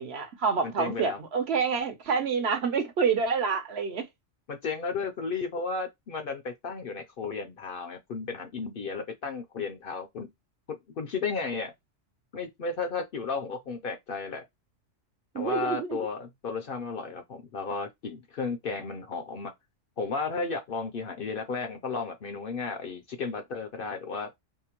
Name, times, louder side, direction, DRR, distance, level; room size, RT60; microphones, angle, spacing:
voice 1, 0.0-4.1 15.3-16.0, right 5 dB, 65° right, 0.9 m, -27 dB
voice 2, 0.6-1.2 4.5-10.3 10.7-11.7 12.3-14.4 15.4-19.5 20.0-24.3, left 4 dB, 60° left, 0.7 m, -34 dB
2.8 x 2.0 x 2.9 m
omnidirectional pair, 1.3 m